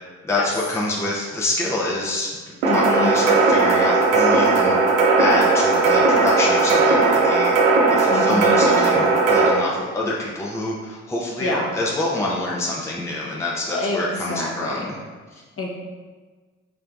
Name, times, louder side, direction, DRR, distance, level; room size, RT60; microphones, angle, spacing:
voice 1, 0.3-4.8 5.2-15.0 15.3-15.4, left 2 dB, 5° left, -4 dB, 0.7 m, -26 dB
voice 2, 2.6-3.1 8.1-8.6 11.4-11.7 13.7-14.0 14.3-14.9 15.6-15.7, left 2 dB, 35° left, -2 dB, 1.1 m, -26 dB
sound 1, 2.6-9.5, right 3 dB, 80° right, 0.7 m, -17 dB
4.4 x 3.5 x 2.6 m, 1.4 s
hypercardioid pair, 40°, 37 cm